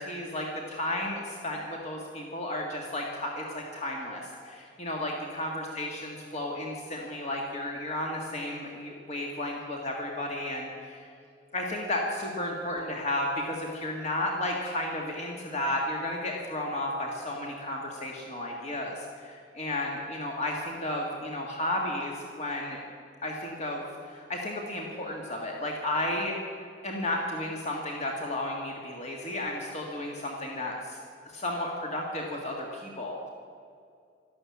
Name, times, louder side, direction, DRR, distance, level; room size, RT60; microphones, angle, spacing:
voice 1, 0.0-11.1 11.5-22.8 23.2-26.4 26.8-31.0 31.3-33.3, left 1 dB, 40° left, 0 dB, 1.8 m, -33 dB
13.0 x 12.0 x 8.6 m, 2.3 s
head